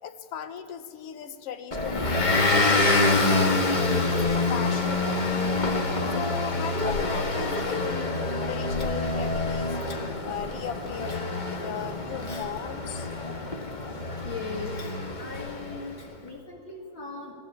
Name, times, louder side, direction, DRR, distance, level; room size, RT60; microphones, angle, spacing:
voice 1, 0.0-2.1 2.5-5.2 6.1-8.2 8.5-9.8 10.2-13.1, left 7 dB, 65° left, 10 dB, 1.7 m, -37 dB
Motor vehicle (road) / Engine, 1.7-15.9, left 2 dB, 25° left, 1.1 m, -26 dB
voice 2, 14.2-14.8 15.2-17.3, left 4 dB, 45° left, -2 dB, 2.3 m, -38 dB
22.5 x 17.5 x 8.5 m, 2.6 s
omnidirectional pair, 3.4 m